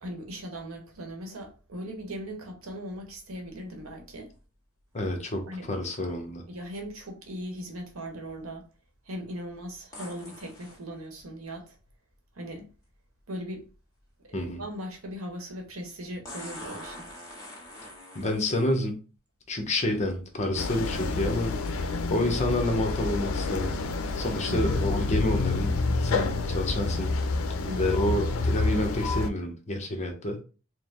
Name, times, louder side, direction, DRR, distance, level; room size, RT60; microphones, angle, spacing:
voice 1, 0.0-4.3 5.4-5.7 6.5-8.7 9.0-11.8 12.3-12.7 13.3-13.7 14.2-17.1 24.5-24.9 27.6-28.0, equal, 90° right, 1.1 m, -39 dB
sound 1, 3.5-3.6 9.9-10.8 12.8-12.9 16.2-18.7 19.7-19.8 20.4-20.7 21.7-21.8, left 1 dB, 15° left, 1.5 m, -44 dB
voice 2, 4.9-6.4 14.3-14.6 18.1-19.0 19.5-23.8 24.2-27.1 27.8-30.4, left 1 dB, 35° left, 0.9 m, -29 dB
sound 2, 20.6-29.3, left 3 dB, 85° left, 0.5 m, -28 dB
4.7 x 2.1 x 3.6 m
head